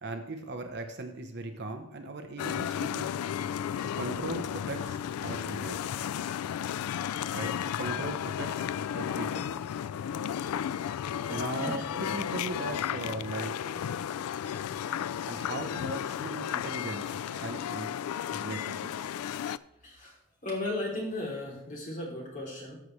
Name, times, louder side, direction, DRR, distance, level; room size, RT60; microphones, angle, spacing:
voice 1, 0.0-3.1 4.0-5.9 7.3-8.6 8.9-9.5 11.3-13.8 15.2-18.0 18.2-19.1, right 2 dB, 50° right, 6 dB, 0.9 m, -38 dB
sound 1, 2.4-19.6, left 9 dB, 85° left, 0.3 m, -34 dB
voice 2, 10.9-11.9 19.8-20.2 20.4-22.8, left 2 dB, 35° left, -2 dB, 3.0 m, -36 dB
13.5 x 6.4 x 3.2 m, 0.77 s
head